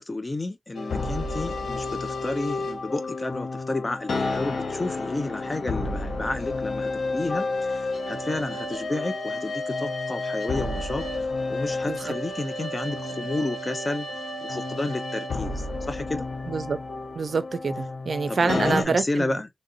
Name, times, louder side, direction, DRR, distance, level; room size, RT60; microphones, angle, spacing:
voice 1, 0.0-14.1 14.4-16.3 18.3-19.5, left 2 dB, 40° left, 0.8 m, -31 dB
sound 1, 0.7-18.8, left 2 dB, 85° left, 0.7 m, -31 dB
voice 2, 16.5-16.8 17.2-19.4, right 4 dB, 75° right, 0.4 m, -26 dB
3.3 x 2.6 x 2.5 m
cardioid pair, 45°, 0 cm